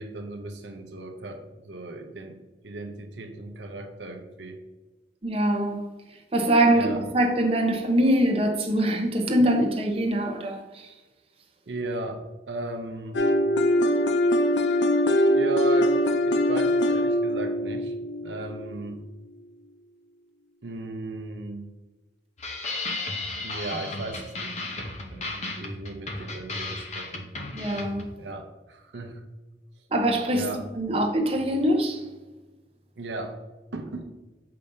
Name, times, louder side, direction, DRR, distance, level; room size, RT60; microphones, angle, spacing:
voice 1, 0.0-2.4 2.6-4.6 6.7-7.0 11.7-13.2 14.7-14.9 15.3-17.9 18.2-19.1 20.6-21.7 23.4-27.3 28.2-29.2 30.3-30.6 33.0-33.4 33.7-34.1, right 2 dB, 80° right, 0.7 m, -36 dB
voice 2, 5.2-5.9 6.3-10.9 27.5-28.0 29.9-32.0, right 1 dB, 35° right, 0.9 m, -23 dB
sound 1, 13.1-19.0, left 1 dB, 75° left, 0.5 m, -23 dB
sound 2, 22.4-28.1, left 2 dB, 40° left, 0.8 m, -34 dB
6.7 x 5.1 x 2.7 m
head